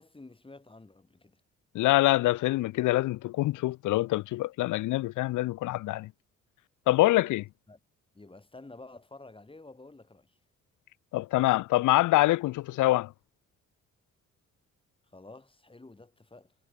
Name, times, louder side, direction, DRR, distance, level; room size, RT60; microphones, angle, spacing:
voice 1, 0.0-1.4 7.7-7.8 8.1-10.4 15.0-16.6, left 2 dB, 15° left, 4.4 m, -50 dB
voice 2, 1.7-6.1 6.9-7.5 11.1-13.1, left 17 dB, 80° left, 0.6 m, -25 dB
cardioid pair, 90°, 30 cm